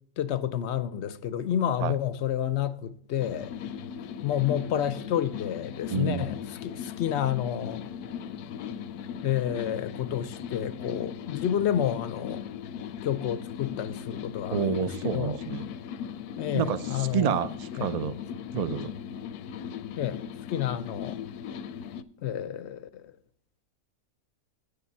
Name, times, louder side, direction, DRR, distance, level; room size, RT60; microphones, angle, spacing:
voice 1, 0.2-3.5 4.2-6.4 6.6-7.8 9.2-12.4 13.0-15.4 16.4-17.4 17.8-17.9 20.0-20.2 20.5-21.2 22.2-23.0, left 10 dB, 65° left, 0.7 m, -30 dB
sound 1, 3.2-22.0, left 8 dB, 90° left, 1.1 m, -38 dB
voice 2, 5.9-6.3 14.5-15.7 16.5-18.2 18.5-18.9, right 7 dB, 75° right, 0.3 m, -29 dB
9.5 x 6.8 x 5.4 m
omnidirectional pair, 1.6 m